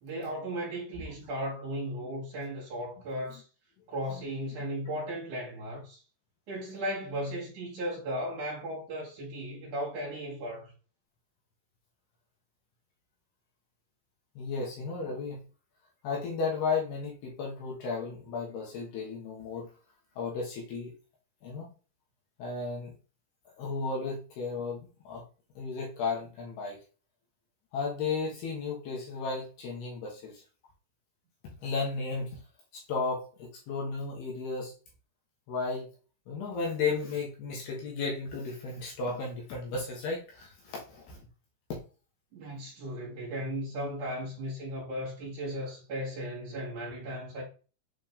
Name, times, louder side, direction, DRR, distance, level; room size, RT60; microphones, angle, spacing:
voice 1, 0.0-3.4 3.9-6.0 6.5-10.7 42.3-47.4, equal, 50° right, 2.9 m, -36 dB
voice 2, 14.4-15.4 16.0-19.7 20.2-20.9 21.4-21.7 22.4-22.9 23.6-25.2 25.6-26.8 27.7-30.4 31.6-32.4 32.7-34.7 35.5-35.9 36.3-41.2, left 4 dB, 65° left, 2.9 m, -34 dB
7.7 x 4.3 x 3.5 m
omnidirectional pair, 5.5 m